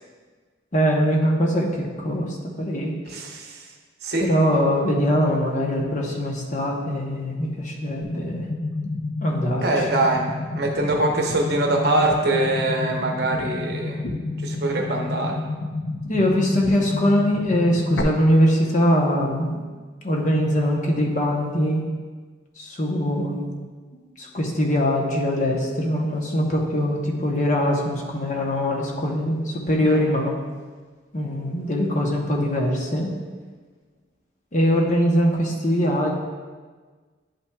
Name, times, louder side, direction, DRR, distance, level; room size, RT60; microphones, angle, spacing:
voice 1, 0.7-2.9 4.2-8.5 9.2-9.9 16.1-19.7 20.0-21.8 22.6-23.5 24.2-30.3 31.1-33.1 34.5-36.2, equal, 40° left, -1 dB, 0.9 m, -22 dB
voice 2, 3.1-3.5 4.0-4.3 9.6-14.0 14.4-15.4 29.8-30.0, right 2 dB, 60° right, 1 dB, 0.9 m, -23 dB
sound 1, 8.0-18.0, left 2 dB, 75° left, 0.7 m, -30 dB
10.0 x 5.6 x 2.3 m, 1.4 s
head